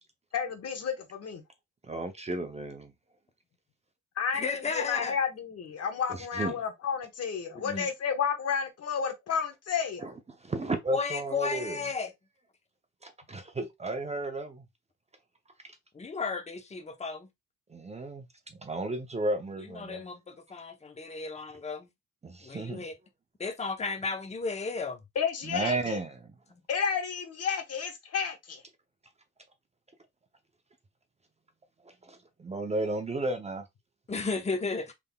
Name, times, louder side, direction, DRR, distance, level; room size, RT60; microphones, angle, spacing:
voice 1, 0.3-1.4 4.2-10.1 25.1-26.0 26.7-28.6, left 7 dB, 55° left, 1.1 m, -31 dB
voice 2, 1.9-2.9 6.3-6.6 10.0-10.1 10.4-11.8 13.0-14.6 17.7-18.2 18.5-20.0 22.2-22.8 25.4-26.3 32.1-33.6, right 2 dB, 20° right, 0.6 m, -33 dB
voice 3, 4.3-5.2 7.5-7.9 10.9-12.1 15.9-17.3 19.6-21.9 22.4-22.9 23.4-25.0 26.5-26.6 34.1-34.9, left 4 dB, 20° left, 0.8 m, -34 dB
3.6 x 3.4 x 2.2 m
cardioid pair, 90°, 30 cm